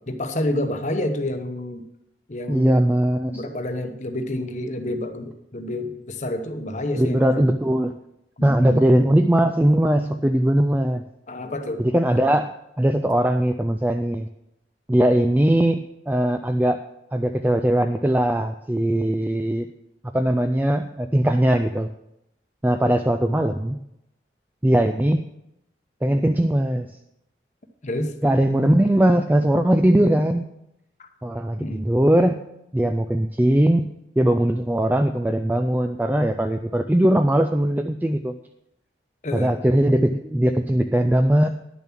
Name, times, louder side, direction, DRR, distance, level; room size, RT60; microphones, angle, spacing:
voice 1, 0.0-1.9 2.3-7.5 8.4-8.8 11.3-11.8 22.8-23.0 27.8-28.2 31.0-31.1 31.6-31.9 39.2-39.5, left 1 dB, 40° left, 6 dB, 1.0 m, -29 dB
voice 2, 2.5-3.4 7.0-7.9 8.4-11.0 11.8-12.5 12.8-14.3 14.9-16.8 17.1-19.7 20.1-21.9 22.6-23.8 24.6-25.2 26.0-26.9 28.2-30.4 31.2-32.4 32.7-33.9 34.2-38.3 39.3-41.5, right 1 dB, 10° right, 7 dB, 0.3 m, -20 dB
10.5 x 7.0 x 6.0 m, 0.83 s
head